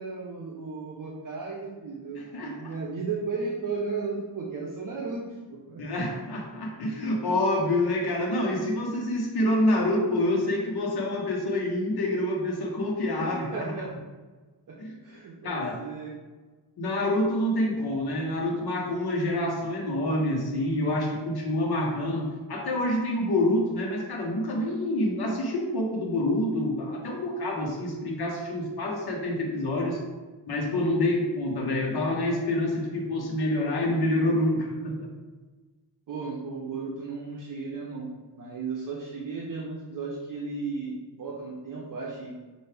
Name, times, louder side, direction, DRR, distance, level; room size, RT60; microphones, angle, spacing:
voice 1, 0.0-5.2 5.7-6.0 13.2-14.1 14.7-14.8 15.0-16.1 36.1-38.1 38.4-42.5, right 4 dB, 50° right, -3 dB, 0.7 m, -35 dB
voice 2, 2.2-2.7 5.8-13.7 14.8-15.0 15.4-15.8 16.8-30.0 30.5-35.1, left 1 dB, 60° left, -1 dB, 1.1 m, -27 dB
5.6 x 2.7 x 3.3 m, 1.3 s
cardioid pair, 90°, 43 cm